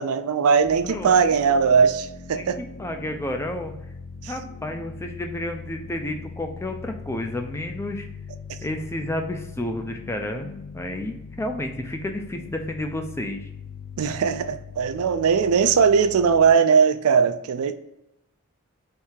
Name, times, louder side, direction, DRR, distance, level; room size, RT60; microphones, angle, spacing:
voice 1, 0.0-2.6 4.2-4.3 14.0-17.7, right 6 dB, 80° right, 12 dB, 0.4 m, -19 dB
sound 1, 0.6-16.6, left 5 dB, 80° left, 0.4 m, -41 dB
voice 2, 0.9-1.4 2.3-3.7 4.3-8.1 8.6-13.5, left 1 dB, 10° left, 5 dB, 0.3 m, -31 dB
3.5 x 2.7 x 4.4 m, 0.84 s
head